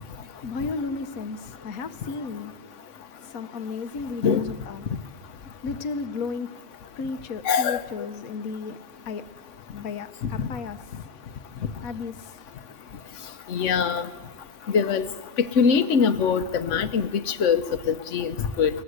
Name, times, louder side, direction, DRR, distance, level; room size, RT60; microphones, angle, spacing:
voice 1, 0.4-2.5 3.2-4.9 5.6-6.5 6.9-8.8 9.1-9.3 9.7-10.8 11.8-12.3, left 4 dB, 85° left, 1.5 m, -33 dB
voice 2, 7.4-7.8 13.5-14.0 14.7-15.0 15.6-17.6 17.9-18.7, left 6 dB, 60° left, 1.3 m, -22 dB
23.0 x 19.5 x 8.0 m
omnidirectional pair, 1.5 m